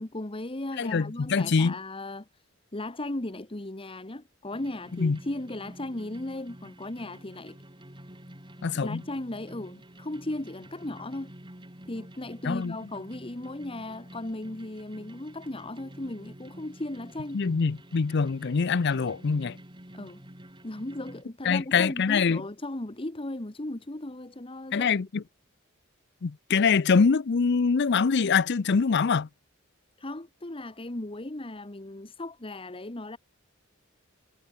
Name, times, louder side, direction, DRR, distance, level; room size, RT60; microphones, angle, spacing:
voice 1, 0.0-2.3 2.7-7.6 8.7-11.3 11.9-17.4 19.9-20.2 20.6-24.9 30.0-33.2, left 1 dB, 25° left, 1.3 m, -36 dB
voice 2, 0.8-1.7 5.0-5.2 8.6-9.0 12.4-12.8 17.3-19.6 21.4-22.4 24.7-25.2 26.2-29.3, left 5 dB, 55° left, 0.5 m, -24 dB
sound 1, 4.5-21.2, right 1 dB, 25° right, 3.8 m, -49 dB
head